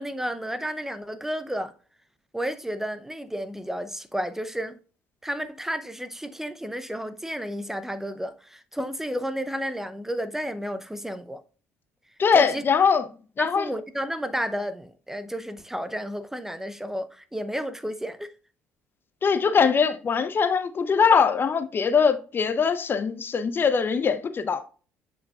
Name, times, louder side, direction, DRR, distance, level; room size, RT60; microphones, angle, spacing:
voice 1, 0.0-1.7 2.3-4.8 5.2-11.4 12.3-12.6 13.4-18.3, equal, 5° right, 0.6 m, -32 dB
voice 2, 12.2-13.0 13.4-13.7 19.2-24.6, left 6 dB, 35° left, 0.7 m, -22 dB
8.0 x 5.0 x 2.4 m
figure-of-eight pair, 55°, 6 cm